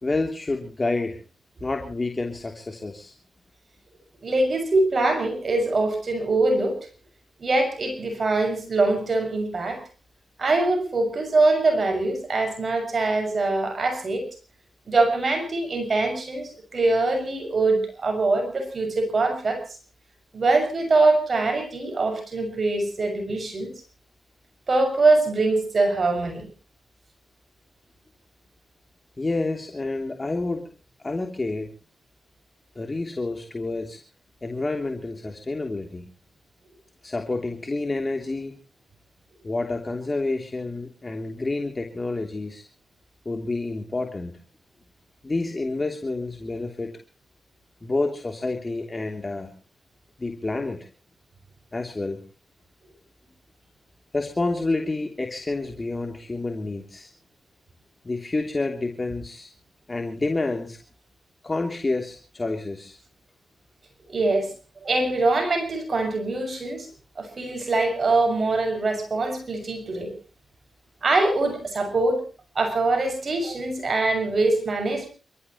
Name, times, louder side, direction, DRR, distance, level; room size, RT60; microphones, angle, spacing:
voice 1, 0.0-1.2 1.6-3.1 29.2-30.7 31.0-31.7 32.7-34.0 34.4-36.1 37.0-38.6 39.4-42.6 43.2-44.4 45.2-46.9 47.8-49.5 50.2-50.9 51.7-52.2 54.1-57.1 58.0-59.5 59.9-60.8 61.4-63.0, left 2 dB, 35° left, 3 dB, 3.1 m, -29 dB
voice 2, 4.2-6.7 7.4-9.8 10.4-14.2 14.9-19.6 20.3-23.7 24.7-26.5 64.1-64.5 64.8-66.9 67.2-70.1 71.0-72.2 72.5-75.1, right 2 dB, 50° right, 5 dB, 6.4 m, -23 dB
28.5 x 14.5 x 3.1 m, 0.35 s
cardioid pair, 50°, 0 cm